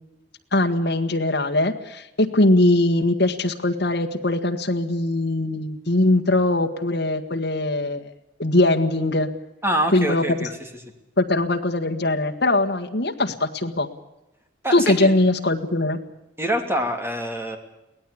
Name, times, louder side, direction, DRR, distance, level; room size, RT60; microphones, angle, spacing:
voice 1, 0.5-8.1 8.4-9.3 9.9-10.5 11.2-13.9 14.7-16.0, left 2 dB, 60° left, 4 dB, 1.7 m, -21 dB
voice 2, 9.6-10.5 14.6-15.1 16.4-17.6, right 1 dB, 15° right, 5 dB, 3.0 m, -25 dB
23.0 x 17.5 x 8.6 m, 0.92 s
head